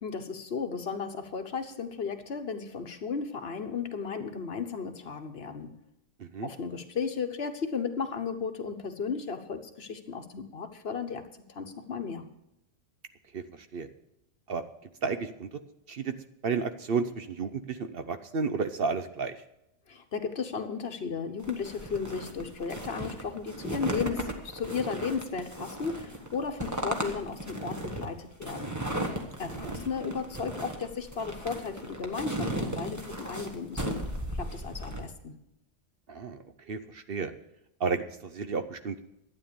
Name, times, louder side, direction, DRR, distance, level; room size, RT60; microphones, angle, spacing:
voice 1, 0.0-5.7 6.4-12.2 19.9-28.7 29.4-34.1 34.3-35.3, left 5 dB, 60° left, 7 dB, 1.3 m, -35 dB
voice 2, 13.3-13.9 14.5-14.6 15.0-15.6 15.9-16.1 16.4-19.4 29.5-29.8 36.1-37.3 37.8-39.0, right 5 dB, 55° right, 9 dB, 0.9 m, -32 dB
sound 1, 21.4-35.1, right 1 dB, 15° right, 1.4 m, -36 dB
12.0 x 9.4 x 6.8 m, 0.83 s
omnidirectional pair, 1.2 m